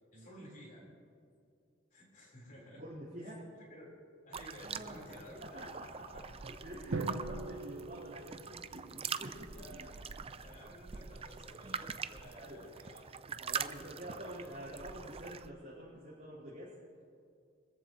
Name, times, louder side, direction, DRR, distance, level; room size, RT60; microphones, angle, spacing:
voice 1, 0.1-0.8 1.9-2.8 3.2-3.3 3.7-3.9 4.3-5.7 6.1-6.3 9.5-9.9 10.3-13.1, equal, 45° left, -3 dB, 4.6 m, -53 dB
voice 2, 2.6-3.4 4.5-10.4 12.3-16.7, equal, 45° right, -11 dB, 4.7 m, -48 dB
sound 1, 4.3-15.5, right 6 dB, 30° right, 0.4 m, -44 dB
Drum, 6.9-9.1, right 2 dB, 90° right, 0.8 m, -41 dB
24.5 x 14.5 x 3.2 m, 2.4 s
head